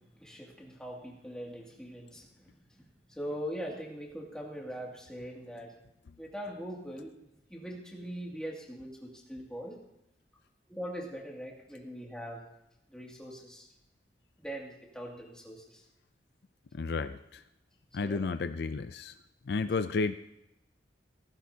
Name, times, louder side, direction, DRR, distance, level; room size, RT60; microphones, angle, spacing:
voice 1, 0.0-5.7 6.2-9.8 10.7-12.4 12.9-13.7 14.4-15.8 18.0-18.2, equal, 5° left, -3 dB, 2.3 m, -42 dB
voice 2, 16.7-17.2 17.9-19.1 19.5-20.2, left 4 dB, 65° left, 11 dB, 0.4 m, -31 dB
16.5 x 14.5 x 2.8 m, 0.87 s
head